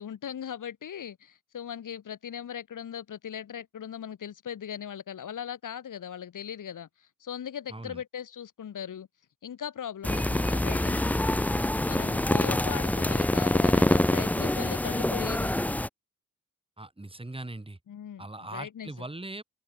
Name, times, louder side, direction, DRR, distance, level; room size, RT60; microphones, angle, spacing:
voice 1, 0.0-9.1 9.4-11.3 11.9-15.5 17.9-18.3 18.5-18.9, left 9 dB, 70° left, 1.9 m, -39 dB
voice 2, 7.7-8.0 16.8-17.8 18.2-19.4, right 2 dB, 15° right, 6.9 m, -40 dB
sound 1, 10.0-15.9, left 1 dB, 5° left, 0.4 m, -25 dB
cardioid pair, 80°, 32 cm